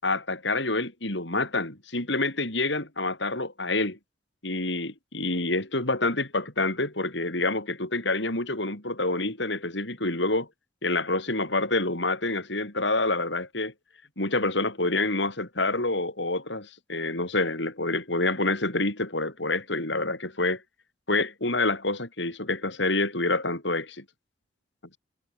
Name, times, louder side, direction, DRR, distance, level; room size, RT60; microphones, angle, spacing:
voice 1, 0.0-4.0 4.4-10.5 10.8-13.7 14.2-20.6 21.1-24.0, left 2 dB, 75° left, 7.5 m, -27 dB
head